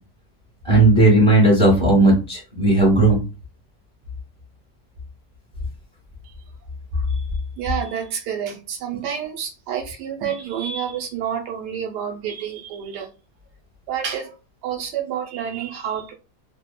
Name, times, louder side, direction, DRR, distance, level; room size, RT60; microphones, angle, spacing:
voice 1, 0.6-3.2, right 2 dB, 20° right, 1.0 m, -15 dB
voice 2, 6.9-7.3 7.6-13.1 13.9-14.3 14.6-16.1, right 8 dB, 85° right, 1.2 m, -29 dB
3.0 x 2.1 x 2.2 m
omnidirectional pair, 1.8 m